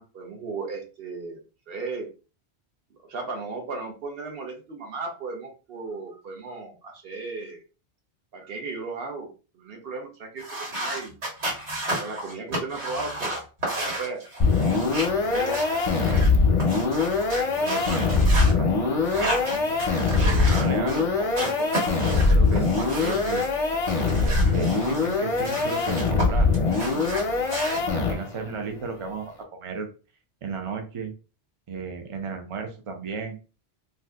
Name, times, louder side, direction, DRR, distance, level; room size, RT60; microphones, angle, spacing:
voice 1, 0.0-1.4 1.7-2.1 3.0-7.6 8.3-9.3 9.5-11.2 12.0-13.3 13.6-14.2 14.6-14.8 15.2-15.6, right 3 dB, 60° right, 3 dB, 0.9 m, -35 dB
sound 1, 10.4-16.3 16.6-18.5 19.0-21.0 21.3-23.5 23.8-26.2 26.5-27.8, right 1 dB, 80° right, 1.5 m, -32 dB
sound 2, 14.4-28.5, left 4 dB, 45° left, 0.5 m, -22 dB
voice 2, 17.6-19.7 20.0-23.5 24.2-26.5 26.8-27.3 27.7-29.9 30.4-31.1 31.7-33.4, right 4 dB, 45° right, 5 dB, 0.4 m, -35 dB
2.6 x 2.3 x 3.3 m, 0.34 s
omnidirectional pair, 1.1 m